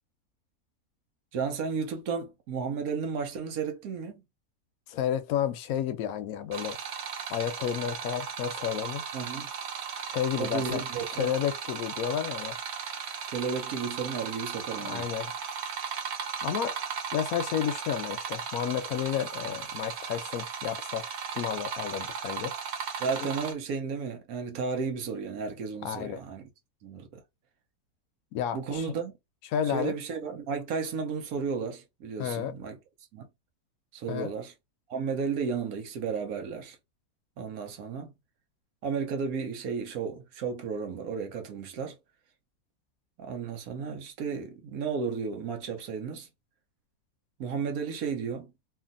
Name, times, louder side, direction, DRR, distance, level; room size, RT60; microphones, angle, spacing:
voice 1, 1.3-4.2 9.1-9.5 10.4-11.3 13.3-15.1 23.0-26.5 26.8-27.1 28.5-29.1 29.7-32.8 33.1-33.3 33.9-34.5 34.9-36.8 37.4-38.1 38.8-42.0 43.2-46.3 47.4-48.5, right 5 dB, 75° right, 1.1 m, -33 dB
voice 2, 4.9-6.8 7.3-9.0 10.1-10.8 11.1-12.6 14.8-15.3 16.4-16.7 17.1-21.1 21.3-22.5 25.8-26.2 28.3-28.9 29.5-30.0 32.2-32.6 34.1-34.3, left 9 dB, 75° left, 1.0 m, -31 dB
sound 1, 6.5-23.5, right 7 dB, 60° right, 0.8 m, -36 dB
2.7 x 2.6 x 2.5 m
omnidirectional pair, 1.6 m